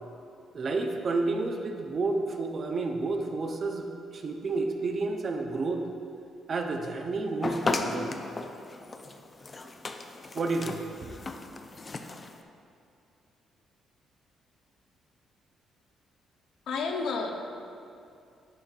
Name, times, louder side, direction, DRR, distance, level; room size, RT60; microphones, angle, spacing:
voice 1, 0.5-3.9 4.1-5.8 6.5-8.1 10.3-10.8, right 3 dB, 45° right, 4 dB, 0.6 m, -30 dB
sound 1, 7.4-12.4, left 3 dB, 30° left, 0.4 m, -35 dB
voice 2, 16.7-17.3, left 4 dB, 80° left, 3 dB, 0.7 m, -30 dB
10.5 x 5.1 x 2.4 m, 2.6 s
cardioid pair, 90°, 0 cm